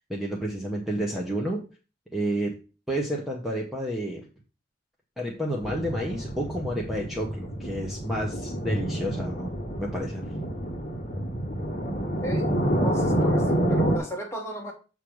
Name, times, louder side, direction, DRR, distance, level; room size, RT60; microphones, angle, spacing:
voice 1, 0.1-1.6 2.1-2.6 2.9-4.3 5.2-9.5 9.8-10.3, right 1 dB, ahead, -2 dB, 1.0 m, -30 dB
sound 1, 5.6-14.0, right 1 dB, 35° left, 1.5 m, -28 dB
voice 2, 12.8-14.7, equal, 15° left, 1 dB, 1.4 m, -34 dB
7.5 x 3.4 x 6.1 m, 0.34 s
head